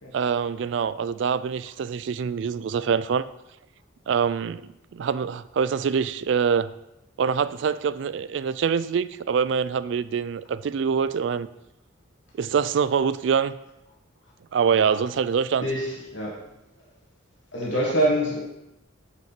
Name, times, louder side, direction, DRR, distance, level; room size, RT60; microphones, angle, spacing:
voice 1, 0.1-3.3 4.1-6.7 7.2-11.5 12.4-13.5 14.5-15.7, right 6 dB, 60° right, 0.3 m, -25 dB
voice 2, 15.6-16.5 17.5-18.4, equal, 65° left, 2.2 m, -25 dB
6.1 x 5.3 x 5.9 m
head